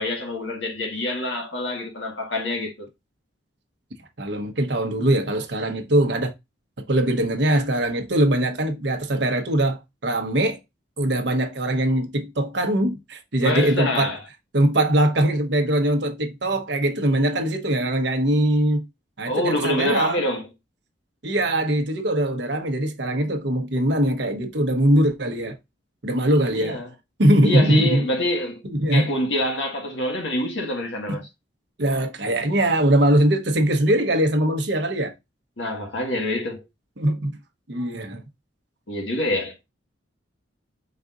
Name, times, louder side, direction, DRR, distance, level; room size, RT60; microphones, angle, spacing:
voice 1, 0.0-2.9 13.4-14.2 19.3-20.5 26.5-26.9 27.4-28.6 28.9-31.2 35.6-36.6 38.9-39.5, left 1 dB, 70° left, 1.7 m, -26 dB
voice 2, 4.2-6.3 6.9-10.6 11.0-14.1 14.5-18.9 19.2-20.2 21.2-25.6 26.0-26.8 27.2-28.1 28.7-29.1 31.1-31.2 31.8-35.1 37.0-37.4 37.7-38.2, right 1 dB, 65° right, 1.0 m, -21 dB
5.1 x 4.1 x 2.5 m
head